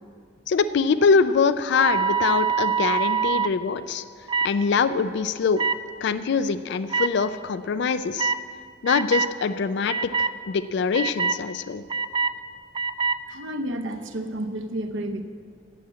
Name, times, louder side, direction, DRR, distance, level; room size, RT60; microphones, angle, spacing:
voice 1, 0.5-4.0 4.4-5.7 6.0-8.3 8.8-11.8, left 5 dB, 65° left, 13 dB, 0.4 m, -23 dB
sound 1, 1.7-3.5 4.3-4.5 5.6-5.8 6.9-7.1 8.2-8.4 8.9-9.3 9.9-10.3 10.9-11.4 11.9-12.3 12.7-13.2, right 5 dB, 25° right, 0.3 m, -24 dB
voice 2, 13.3-15.2, right 1 dB, 80° right, 6 dB, 0.8 m, -31 dB
8.5 x 7.6 x 8.8 m, 2.1 s
head